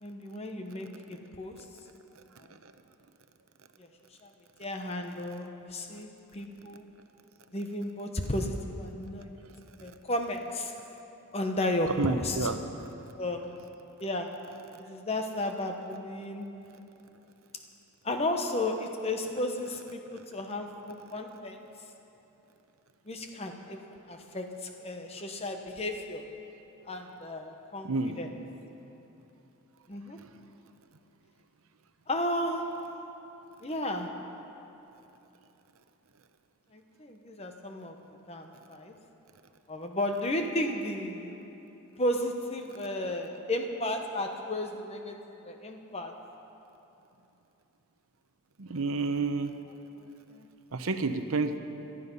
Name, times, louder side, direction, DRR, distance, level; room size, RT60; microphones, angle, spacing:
voice 1, 0.0-1.7 3.8-3.9 4.2-4.3 4.6-6.9 7.5-9.3 9.8-10.7 11.3-12.5 13.2-13.5 14.0-14.4 14.8-16.5 18.0-21.7 23.0-26.3 26.9-27.9 28.2-28.3 29.9-30.2 32.1-32.8 33.6-34.2 36.7-38.0 38.3-38.9 39.7-41.3 42.0-45.2 45.4-46.2 50.3-50.5, left 1 dB, 30° left, 4 dB, 1.0 m, -33 dB
voice 2, 12.0-12.5 27.8-28.2 48.6-49.5 50.7-51.6, right 3 dB, 70° right, 8 dB, 0.8 m, -29 dB
18.0 x 12.5 x 5.5 m, 3.0 s
head